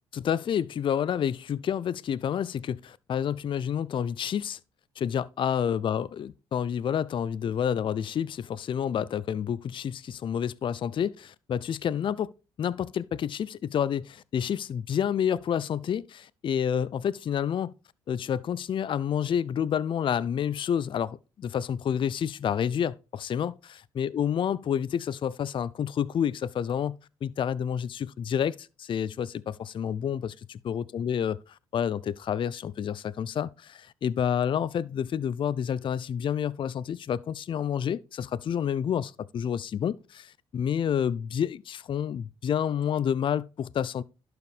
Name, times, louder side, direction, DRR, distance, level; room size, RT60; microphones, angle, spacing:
voice 1, 0.1-4.6 5.0-12.3 12.6-17.7 18.1-23.6 24.0-27.0 27.2-30.3 30.6-44.0, left 8 dB, 45° left, 0.4 m, -29 dB
11.5 x 4.8 x 3.2 m
supercardioid pair, 60°, 12 cm